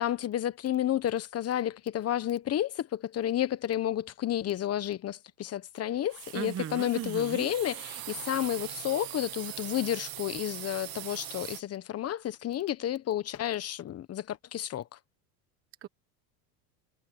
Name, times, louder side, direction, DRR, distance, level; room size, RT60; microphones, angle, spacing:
voice 1, 0.0-14.9, left 11 dB, 30° left, 1.2 m, -31 dB
sound 1, 6.1-11.6, right 16 dB, 45° right, 2.0 m, -41 dB
voice 2, 6.3-7.5 15.8-15.9, right 10 dB, 30° right, 1.3 m, -37 dB
supercardioid pair, 120°, 47 cm